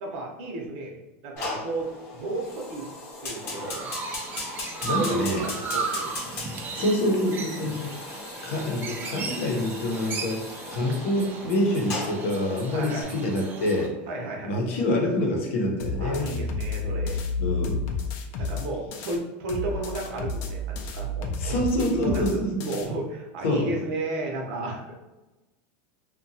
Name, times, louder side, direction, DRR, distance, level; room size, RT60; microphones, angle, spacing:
voice 1, 0.0-2.9 3.2-3.9 5.0-6.1 7.6-7.7 12.7-13.1 14.1-14.6 16.0-17.2 18.4-21.3 21.8-24.9, right 2 dB, 60° right, 1 dB, 0.7 m, -33 dB
Fire, 1.4-13.0, left 2 dB, 35° left, 0.8 m, -38 dB
Chirp tweet, 3.3-13.9, right 4 dB, 30° right, 0.4 m, -36 dB
voice 2, 4.8-5.5 6.8-8.2 8.4-10.4 10.7-13.9 14.4-16.3 17.4-17.8 21.4-22.6 23.4-23.7, left 1 dB, 80° left, 0 dB, 0.7 m, -26 dB
sound 1, 15.8-19.2 19.5-22.9, left 3 dB, 50° left, 0.4 m, -31 dB
2.7 x 2.2 x 2.7 m, 1.1 s
supercardioid pair, 155°, 7 cm